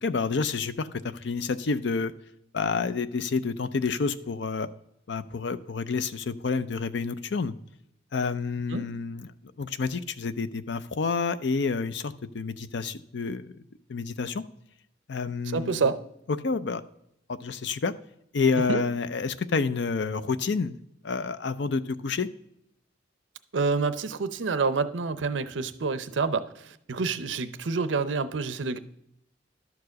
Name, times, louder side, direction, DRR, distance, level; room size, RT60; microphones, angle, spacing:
voice 1, 0.0-2.1 2.5-4.7 5.1-7.5 8.1-9.3 9.6-13.5 13.9-14.4 15.1-15.9 16.3-16.8 17.3-17.9 18.3-20.8 21.0-22.3, left 4 dB, 65° left, 14 dB, 0.5 m, -29 dB
voice 2, 15.5-16.0 18.7-18.8 23.5-28.8, right 4 dB, 80° right, 13 dB, 0.6 m, -28 dB
11.5 x 4.8 x 6.3 m, 0.77 s
head